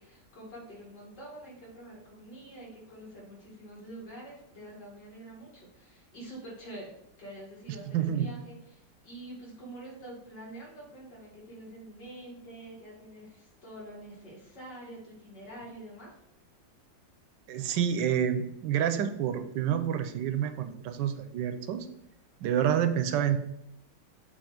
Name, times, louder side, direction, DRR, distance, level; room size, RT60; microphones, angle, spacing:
voice 1, 0.0-16.2, right 1 dB, 70° left, -4 dB, 2.7 m, -46 dB
voice 2, 7.9-8.3 17.5-21.9 22.4-23.4, right 9 dB, 85° right, 9 dB, 1.3 m, -28 dB
7.0 x 3.1 x 5.0 m, 0.82 s
omnidirectional pair, 1.9 m